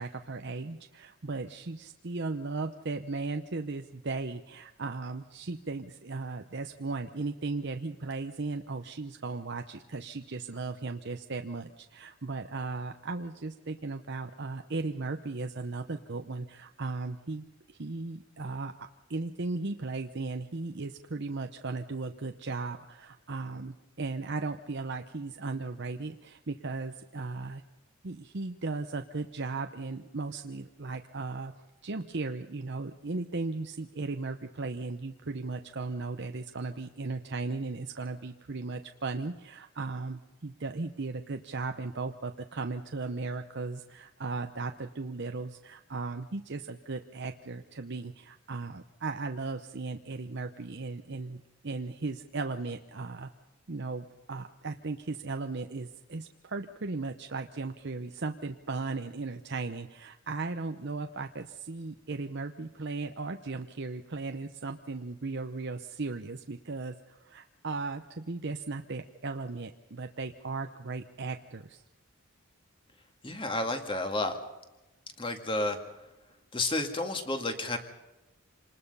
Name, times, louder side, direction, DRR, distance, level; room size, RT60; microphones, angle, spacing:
voice 1, 0.0-27.6 28.0-31.5 31.8-53.3 53.7-71.8, right 3 dB, 50° right, 6 dB, 0.8 m, -36 dB
voice 2, 73.2-74.4 75.2-75.8 76.5-77.8, left 2 dB, 25° left, 6 dB, 2.1 m, -31 dB
27.0 x 20.0 x 5.5 m, 1.0 s
head